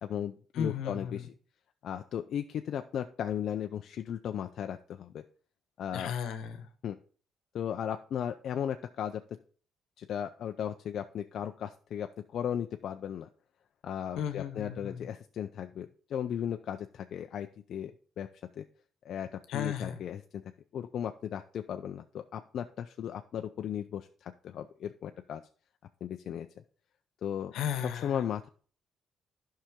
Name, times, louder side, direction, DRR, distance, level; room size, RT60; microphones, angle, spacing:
voice 1, 0.0-1.3 1.8-5.2 5.8-6.1 6.8-7.0 7.5-9.2 10.0-13.3 13.8-17.9 18.2-18.3 18.6-18.7 19.0-20.2 20.7-25.4 26.0-26.5 27.2-27.5 28.0-28.5, left 9 dB, 70° left, 6 dB, 0.4 m, -36 dB
voice 2, 0.5-1.3 5.9-6.7 14.2-15.1 19.5-20.0 27.5-28.2, left 8 dB, 85° left, 9 dB, 1.0 m, -35 dB
11.5 x 5.7 x 3.7 m, 0.44 s
cardioid pair, 90°, 0 cm